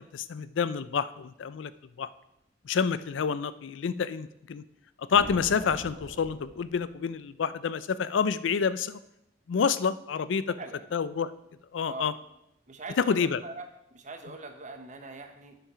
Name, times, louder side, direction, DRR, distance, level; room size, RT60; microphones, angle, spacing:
voice 1, 0.0-1.7 2.0-2.1 2.7-4.6 5.0-9.0 9.5-10.5 10.9-11.3 11.7-12.1 13.0-13.4, left 6 dB, 70° left, 15 dB, 0.4 m, -28 dB
sound 1, 5.1-7.2, right 1 dB, 80° right, 3.1 m, -44 dB
voice 2, 10.6-10.9 11.8-12.1 12.7-13.6 13.9-15.6, right 3 dB, 40° right, 5 dB, 1.1 m, -42 dB
8.6 x 5.7 x 5.6 m, 0.82 s
head